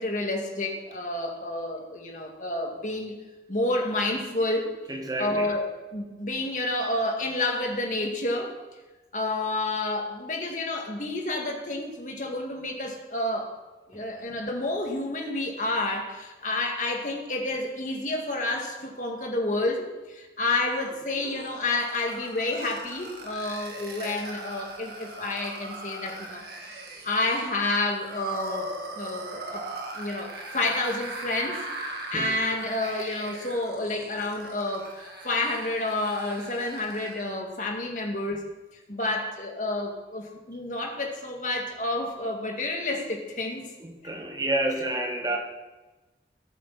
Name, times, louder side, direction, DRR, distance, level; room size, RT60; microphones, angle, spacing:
voice 1, 0.0-3.2 3.5-4.8 5.2-5.7 5.9-8.6 9.1-13.5 13.9-29.6 29.9-38.4 38.9-43.6, left 2 dB, 45° left, 1 dB, 2.0 m, -29 dB
voice 2, 4.9-5.5 13.9-14.0 32.1-32.4 43.8-45.4, right 1 dB, 20° right, 2 dB, 1.2 m, -29 dB
sound 1, 20.7-37.3, right 2 dB, 65° right, 1.8 m, -40 dB
18.5 x 8.4 x 4.2 m, 1.1 s
head